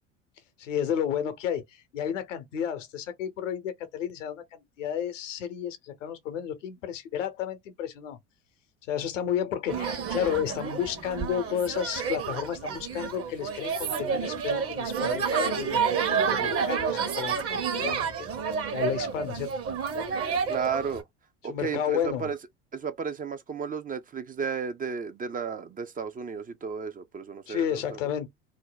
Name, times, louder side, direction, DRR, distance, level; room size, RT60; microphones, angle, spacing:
voice 1, 0.6-8.2 8.9-18.3 18.7-19.5 21.5-22.3 27.5-28.3, left 9 dB, 80° left, 0.8 m, -32 dB
sound 1, 9.7-21.0, right 6 dB, 40° right, 1.0 m, -29 dB
voice 2, 20.5-21.0 21.4-22.4 22.7-28.0, right 6 dB, 25° right, 0.5 m, -33 dB
2.7 x 2.1 x 3.8 m
hypercardioid pair, 70°, 37 cm